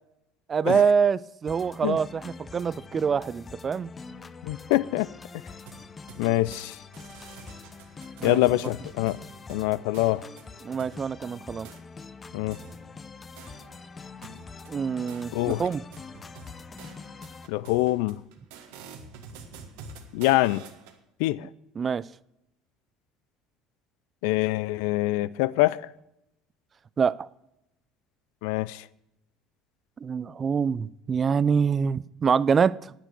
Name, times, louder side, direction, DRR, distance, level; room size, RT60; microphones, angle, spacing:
voice 1, 0.5-3.9 8.2-8.4 10.6-11.7 14.7-15.8 21.8-22.0 27.0-27.1 30.0-32.9, right 6 dB, 35° right, 0.4 m, -25 dB
sound 1, 1.5-17.5, left 4 dB, 30° left, 0.8 m, -45 dB
voice 2, 4.4-5.1 6.2-6.8 8.2-9.2 9.5-10.3 12.3-12.6 15.3-15.7 17.5-18.2 20.1-20.6 21.2-21.5 24.2-25.9 28.4-28.9, left 18 dB, 70° left, 0.4 m, -25 dB
sound 2, 5.7-6.7 6.9-11.0 11.6-11.8 12.5-13.9 14.2-21.0, right 5 dB, 75° right, 1.6 m, -48 dB
10.0 x 9.2 x 8.2 m
hypercardioid pair, 70°, 0 cm